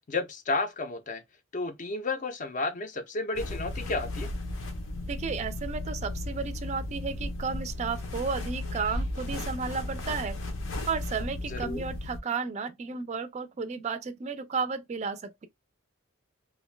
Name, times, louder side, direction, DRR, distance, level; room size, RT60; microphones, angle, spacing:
voice 1, 0.1-1.2 1.5-4.3 11.5-11.9, left 3 dB, 40° left, 0.5 m, -32 dB
sound 1, 3.4-12.2, left 1 dB, 85° left, 0.7 m, -35 dB
voice 2, 5.1-10.4 10.9-15.5, right 5 dB, 35° right, 0.3 m, -33 dB
2.5 x 2.1 x 3.1 m
head